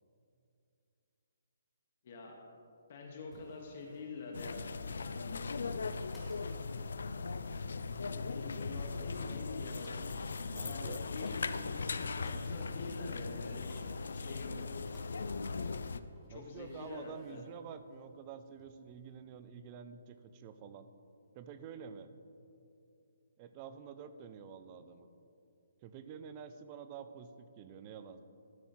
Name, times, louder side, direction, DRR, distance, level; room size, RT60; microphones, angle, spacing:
voice 1, 2.0-2.4 2.9-4.7 5.1-5.6 8.1-10.0 10.5-13.7 14.1-14.6 16.3-17.4, left 3 dB, 40° left, 1 dB, 1.0 m, -46 dB
sound 1, 3.3-19.1, left 1 dB, 5° left, 1.3 m, -64 dB
sound 2, 4.3-16.0, left 4 dB, 75° left, 0.4 m, -39 dB
voice 2, 10.5-11.0 16.3-20.9 21.3-22.1 23.4-25.1 25.8-28.2, right 7 dB, 20° right, 11 dB, 0.3 m, -49 dB
12.5 x 4.5 x 4.3 m, 2.6 s
hypercardioid pair, 175°, 0 cm